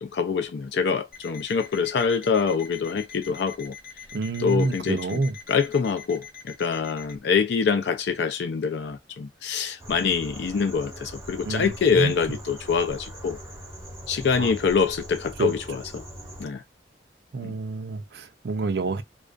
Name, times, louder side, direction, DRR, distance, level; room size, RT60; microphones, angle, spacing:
voice 1, 0.0-3.7 4.4-5.2 5.5-13.4 14.1-16.0 16.4-16.6 17.4-17.5, left 5 dB, 70° left, 0.4 m, -25 dB
Alarm, 1.1-7.2, left 7 dB, 55° left, 0.8 m, -44 dB
voice 2, 4.1-5.4 11.4-12.1 14.4-14.5 15.4-15.5 17.3-19.0, right 3 dB, 65° right, 0.5 m, -28 dB
sound 1, 9.8-16.5, right 1 dB, 15° right, 0.6 m, -41 dB
2.3 x 2.1 x 2.4 m
head